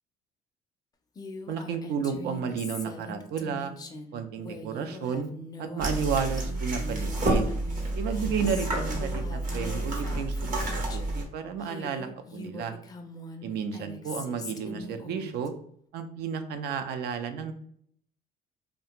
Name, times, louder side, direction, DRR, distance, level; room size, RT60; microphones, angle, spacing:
Female speech woman speaking, 1.2-11.2 11.6-15.5, left 2 dB, 20° left, 0.4 m, -42 dB
voice 1, 1.5-3.7 4.1-5.3 5.6-7.5 8.0-12.8 13.4-15.5 15.9-17.5, right 6 dB, 75° right, 8 dB, 0.4 m, -32 dB
sound 1, 5.8-11.2, right 2 dB, 50° right, 0.9 m, -29 dB
2.4 x 2.2 x 2.8 m, 0.63 s
cardioid pair, 110°, 17 cm